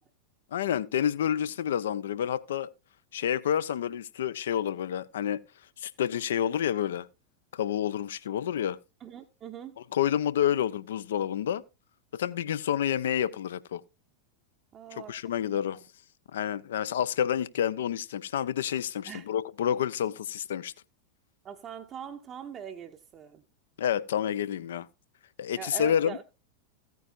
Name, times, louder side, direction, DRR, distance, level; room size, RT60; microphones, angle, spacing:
voice 1, 0.5-2.7 3.1-5.4 5.8-7.1 7.5-8.8 9.9-11.6 12.1-13.8 15.1-15.8 16.3-20.7 23.8-24.9 25.4-26.2, left 9 dB, 60° left, 0.6 m, -29 dB
voice 2, 9.0-9.8 14.7-15.8 19.1-19.3 21.4-23.4 25.6-26.2, right 8 dB, 30° right, 0.8 m, -42 dB
15.0 x 9.3 x 2.5 m
figure-of-eight pair, 90°, 0 cm